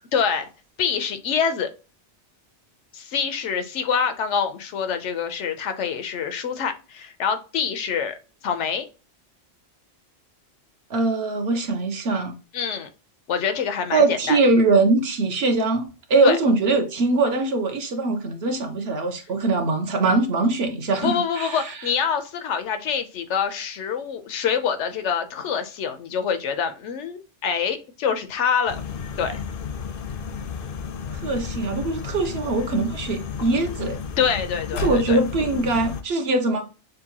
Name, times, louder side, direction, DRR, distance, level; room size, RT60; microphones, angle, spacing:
voice 1, 0.1-0.5 0.8-1.7 2.9-8.1 8.4-8.9 12.5-12.9 13.3-14.4 16.2-16.4 21.0-28.8 29.2-29.4 34.2-35.2, left 7 dB, 85° left, 1.0 m, -25 dB
voice 2, 10.9-12.4 13.9-21.7 31.1-34.0 34.7-36.6, right 3 dB, 65° right, 1.0 m, -22 dB
sound 1, 28.7-36.0, left 6 dB, 60° left, 0.7 m, -32 dB
6.6 x 2.3 x 2.8 m
omnidirectional pair, 1.2 m